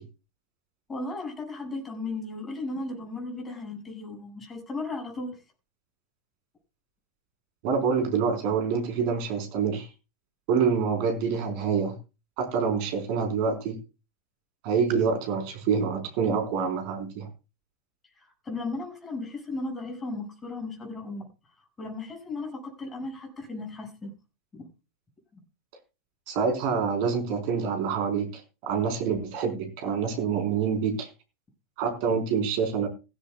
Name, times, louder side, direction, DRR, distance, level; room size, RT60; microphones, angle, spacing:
voice 1, 0.9-5.4 18.2-21.3 21.8-24.1 24.5-24.7, left 2 dB, 15° left, 7.1 m, -35 dB
voice 2, 7.6-9.9 10.5-11.9 12.4-13.8 14.6-17.3 26.3-31.1 31.8-32.9, right 6 dB, 45° right, 4.3 m, -26 dB
17.0 x 16.0 x 2.4 m
figure-of-eight pair, 90°, 0 cm